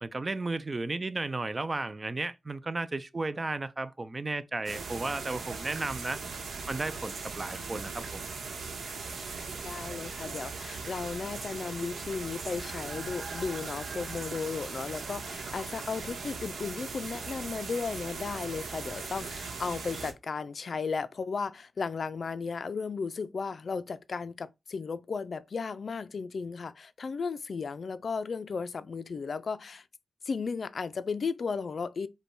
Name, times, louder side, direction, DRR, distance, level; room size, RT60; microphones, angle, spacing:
voice 1, 0.0-6.2 6.7-8.3, right 2 dB, 30° right, 0.4 m, -34 dB
sound 1, 4.6-20.1, right 4 dB, 90° right, 0.9 m, -39 dB
voice 2, 9.6-29.9 30.2-32.1, left 5 dB, 60° left, 0.3 m, -35 dB
5.1 x 2.2 x 4.6 m
wide cardioid pair, 105°, 0 cm